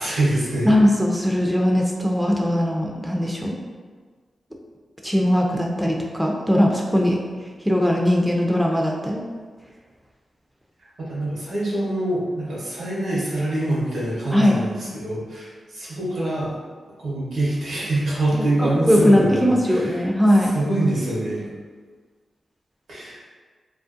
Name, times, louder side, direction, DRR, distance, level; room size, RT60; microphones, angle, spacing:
voice 1, 0.0-0.7 10.8-16.5 17.0-20.0 20.4-21.5 22.9-23.2, right 1 dB, 85° right, -7 dB, 0.8 m, -25 dB
voice 2, 0.7-3.6 5.0-7.2 7.6-9.2 14.3-14.6 18.3-20.5, equal, 5° right, 0 dB, 0.4 m, -20 dB
2.5 x 2.1 x 2.4 m, 1.5 s
supercardioid pair, 45°, 0 cm